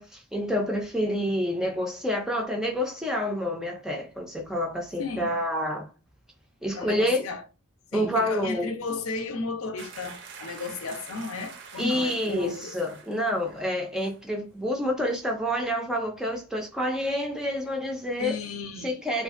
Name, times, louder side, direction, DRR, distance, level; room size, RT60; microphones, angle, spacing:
voice 1, 0.0-5.9 6.6-7.2 7.9-8.7 11.8-18.4 18.8-19.2, equal, 5° right, 0.3 m, -28 dB
voice 2, 5.0-5.4 6.7-7.4 7.9-12.8 18.2-19.0, left 3 dB, 80° left, 0.5 m, -34 dB
sound 1, 9.8-13.7 14.0-14.2, right 5 dB, 55° right, 0.5 m, -46 dB
2.5 x 2.3 x 2.4 m
head